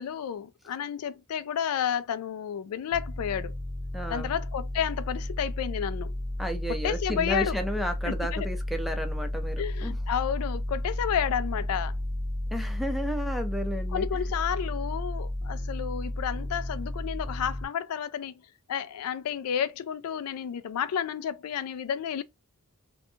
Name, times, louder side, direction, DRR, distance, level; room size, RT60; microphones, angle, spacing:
voice 1, 0.0-3.5 4.1-6.1 6.7-7.6 8.1-8.5 9.6-12.0 13.9-18.4 18.7-22.2, left 8 dB, 70° left, 0.3 m, -31 dB
sound 1, 2.9-17.6, left 1 dB, 55° right, 1.1 m, -33 dB
voice 2, 3.9-4.3 6.4-9.9 12.5-14.1, equal, ahead, 0.4 m, -33 dB
2.6 x 2.2 x 2.7 m
head